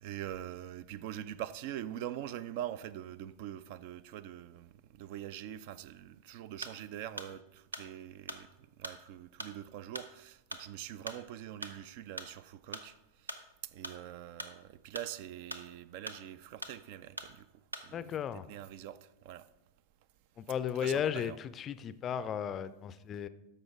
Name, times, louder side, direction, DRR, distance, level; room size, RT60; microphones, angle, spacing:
voice 1, 0.0-4.7 5.0-8.5 8.8-12.9 13.7-17.5 17.8-19.5 20.8-21.4, right 11 dB, 50° right, 0.3 m, -43 dB
sound 1, 6.6-6.8 7.2-12.4 12.7-14.0 14.3-16.8 17.2-17.3 17.7-17.9, right 1 dB, 85° right, 0.7 m, -43 dB
voice 2, 17.9-18.5 20.4-23.3, left 8 dB, 30° left, 0.4 m, -35 dB
13.0 x 5.4 x 3.6 m
figure-of-eight pair, 90°, 0 cm